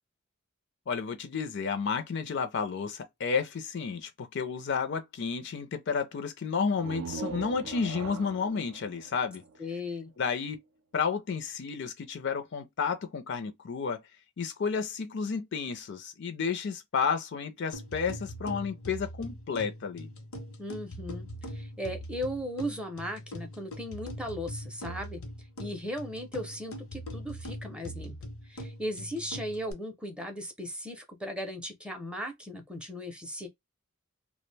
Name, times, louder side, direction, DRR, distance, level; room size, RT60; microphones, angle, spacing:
voice 1, 0.9-9.4 10.2-10.6 10.9-14.0 14.4-20.1, left 5 dB, 55° left, 0.4 m, -31 dB
sound 1, 6.7-10.3, right 5 dB, 75° right, 0.4 m, -41 dB
voice 2, 9.6-10.1 20.6-21.2 21.5-25.2 25.6-28.2 28.5-33.5, equal, 5° right, 0.5 m, -37 dB
sound 2, 17.7-29.7, equal, 85° left, 0.8 m, -42 dB
2.3 x 2.1 x 3.2 m
head